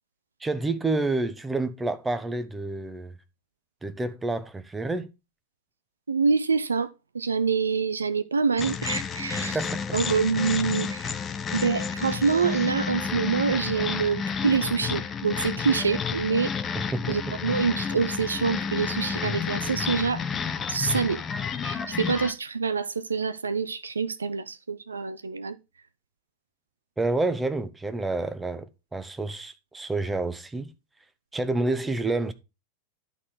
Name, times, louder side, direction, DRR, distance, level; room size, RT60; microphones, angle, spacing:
voice 1, 0.4-3.1 3.8-5.1 9.4-9.8 16.7-17.2 27.0-30.7 31.3-32.3, right 2 dB, 10° right, 0.9 m, -29 dB
voice 2, 6.1-6.9 7.1-9.6 9.9-11.1 11.5-16.5 17.1-20.2 20.7-21.2 21.6-25.6, right 5 dB, 75° right, 0.5 m, -26 dB
sound 1, 8.6-22.3, left 6 dB, 20° left, 0.8 m, -31 dB
11.0 x 4.2 x 4.9 m
figure-of-eight pair, 90°, 0 cm